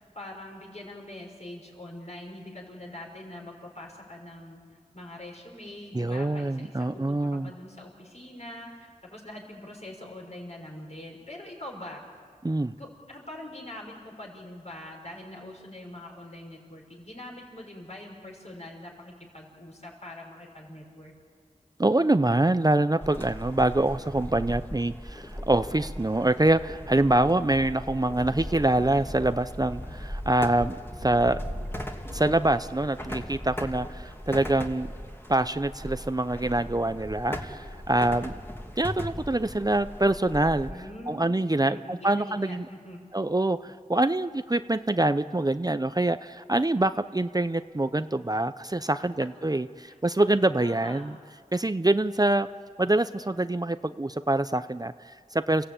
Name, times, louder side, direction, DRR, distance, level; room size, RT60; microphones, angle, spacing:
voice 1, 0.0-4.6 4.9-12.0 12.7-21.1 40.6-41.3 41.7-43.0 49.8-50.0 50.6-51.0, left 1 dB, 50° left, 0 dB, 6.0 m, -43 dB
voice 2, 5.9-7.5 12.4-12.7 21.8-30.8 31.0-31.4 32.1-34.9 35.3-38.4 38.8-40.7 41.1-42.7 43.1-51.2 51.5-52.5 52.8-55.7, right 2 dB, 25° right, 12 dB, 0.6 m, -25 dB
sound 1, 23.0-40.7, equal, 15° left, 2.4 m, -38 dB
29.0 x 16.5 x 8.9 m, 2.1 s
wide cardioid pair, 45°, 14 cm